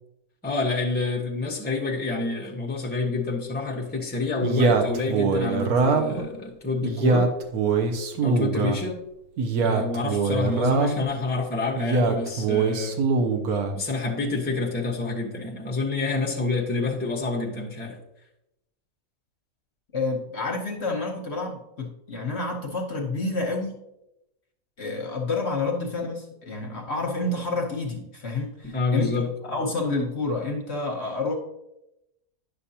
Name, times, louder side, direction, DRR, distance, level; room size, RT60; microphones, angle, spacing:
voice 1, 0.4-7.3 8.2-9.0 9.6-13.0 13.7-18.0 28.6-29.3, left 3 dB, 10° left, 0 dB, 0.9 m, -27 dB
Male speech man speaking, 4.4-6.2 6.8-8.8 9.4-11.1 11.8-13.8, right 4 dB, 90° right, 1.3 m, -23 dB
voice 2, 19.9-23.8 24.8-29.1 29.4-31.3, left 3 dB, 50° left, 2 dB, 1.1 m, -29 dB
10.0 x 6.2 x 2.8 m, 0.88 s
omnidirectional pair, 1.5 m